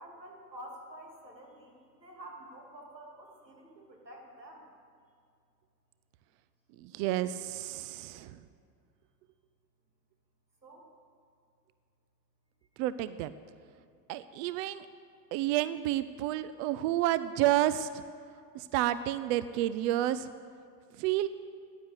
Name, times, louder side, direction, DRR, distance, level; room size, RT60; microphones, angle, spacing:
voice 1, 0.0-4.6 10.6-10.8, right 1 dB, 85° right, 0 dB, 2.5 m, -49 dB
voice 2, 6.8-8.4 12.8-13.3 14.1-14.9 15.3-17.9 18.5-20.3 21.0-21.3, right 14 dB, 45° right, 14 dB, 0.5 m, -30 dB
14.5 x 10.0 x 7.9 m, 2.3 s
figure-of-eight pair, 75°, 49 cm